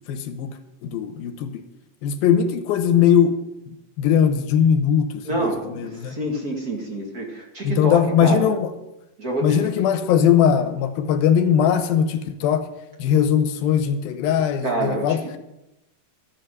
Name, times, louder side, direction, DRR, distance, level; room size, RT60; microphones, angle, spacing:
voice 1, 0.1-0.5 0.8-1.6 2.0-3.3 4.0-5.5 5.7-6.1 7.6-8.7 9.4-12.6 13.0-15.2, left 8 dB, 75° left, 9 dB, 2.7 m, -20 dB
voice 2, 5.2-8.5 9.2-9.7 14.6-15.4, right 2 dB, 30° right, 1 dB, 1.7 m, -27 dB
13.0 x 7.6 x 9.2 m, 0.90 s
omnidirectional pair, 4.7 m